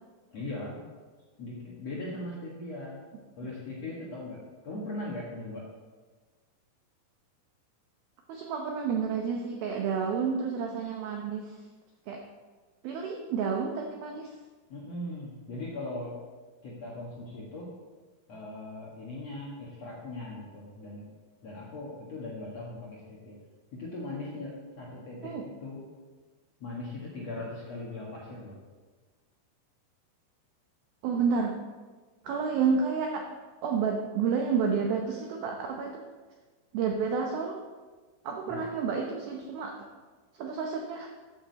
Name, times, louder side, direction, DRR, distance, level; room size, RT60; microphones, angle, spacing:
voice 1, 0.3-0.8 1.4-3.0 3.4-5.7 14.7-16.2 16.6-17.7 18.3-21.0 21.4-23.4 23.7-25.8 26.6-28.5 38.5-38.6, left 2 dB, 55° left, -5 dB, 1.8 m, -39 dB
voice 2, 8.3-11.6 12.1-12.2 12.8-14.3 25.2-25.4 31.0-31.6 32.2-33.3 33.6-36.0 36.7-37.6 38.2-39.9 40.4-41.1, right 5 dB, 80° right, 2 dB, 2.1 m, -30 dB
14.0 x 8.7 x 4.1 m, 1.4 s
omnidirectional pair, 5.5 m